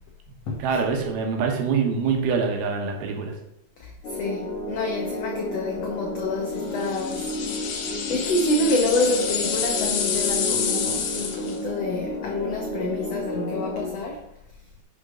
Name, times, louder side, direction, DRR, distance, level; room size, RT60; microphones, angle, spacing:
voice 1, 0.6-3.3, right 5 dB, 85° right, 2 dB, 3.2 m, -24 dB
voice 2, 3.8-7.3 8.1-14.2, left 2 dB, 85° left, 1 dB, 1.4 m, -27 dB
sound 1, 4.0-13.9, left 2 dB, 45° left, 2.2 m, -32 dB
sound 2, 6.8-11.6, left 6 dB, 60° left, 2.2 m, -28 dB
9.8 x 6.1 x 3.8 m, 0.81 s
omnidirectional pair, 4.3 m